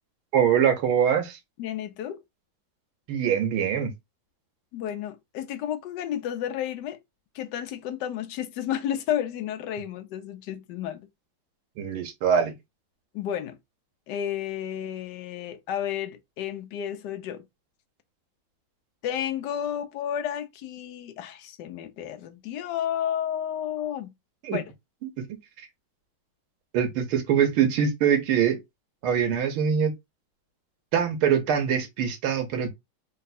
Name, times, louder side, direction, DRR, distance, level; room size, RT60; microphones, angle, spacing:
voice 1, 0.3-1.4 3.1-3.9 11.8-12.5 24.4-24.6 26.7-28.6 29.0-29.9 30.9-32.7, right 8 dB, 90° right, 1.9 m, -23 dB
voice 2, 1.6-2.2 4.7-7.0 7.3-11.1 13.1-13.6 14.1-17.5 19.0-24.1 24.5-24.6, left 10 dB, 70° left, 1.1 m, -32 dB
4.1 x 2.3 x 4.1 m
omnidirectional pair, 2.3 m